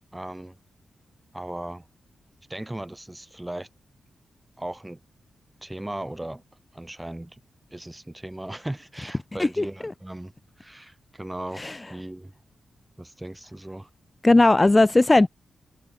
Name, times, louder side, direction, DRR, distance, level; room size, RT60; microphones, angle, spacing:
voice 1, 0.1-0.5 1.3-1.9 2.5-3.7 4.6-5.0 5.6-6.4 6.7-7.4 7.7-10.3 10.6-12.3 13.0-13.9, right 1 dB, 15° right, 3.4 m, -37 dB
voice 2, 14.2-15.3, left 2 dB, 25° left, 0.3 m, -17 dB
supercardioid pair, 45°, 0 cm